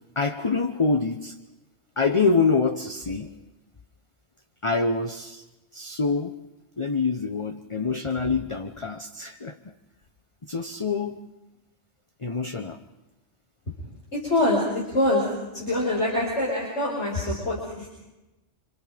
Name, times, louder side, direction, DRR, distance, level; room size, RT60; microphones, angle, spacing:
voice 1, 0.2-1.4 2.0-3.3 4.6-5.4 5.7-6.4 6.8-9.6 10.4-11.2 12.2-12.8, left 4 dB, 25° left, 5 dB, 1.0 m, -25 dB
voice 2, 14.1-15.3 15.5-17.9, left 1 dB, 65° left, -4 dB, 6.0 m, -25 dB
28.0 x 27.5 x 5.2 m, 1.0 s
omnidirectional pair, 1.2 m